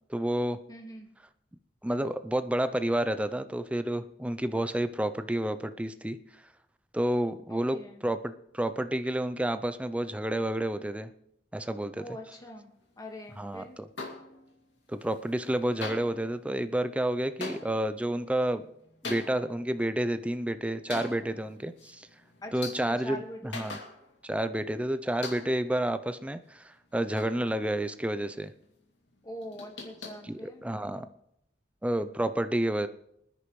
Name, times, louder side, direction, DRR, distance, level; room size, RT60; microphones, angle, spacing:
voice 1, 0.1-0.6 1.8-6.2 6.9-11.1 11.5-12.0 13.3-13.9 14.9-18.6 19.0-22.1 22.5-23.8 24.2-28.5 30.2-31.1 31.8-32.9, right 1 dB, 5° right, 11 dB, 0.5 m, -30 dB
voice 2, 0.7-1.1 7.5-8.0 12.0-13.8 22.4-23.8 29.2-30.6, left 1 dB, 20° left, 3 dB, 1.6 m, -43 dB
sound 1, 14.0-14.7 15.0-15.5 15.8-24.4 24.7-24.8 25.2-25.8 26.2-28.0 28.3-28.7 29.1-31.0, left 3 dB, 85° left, 2.4 m, -44 dB
24.5 x 9.9 x 3.2 m, 0.77 s
head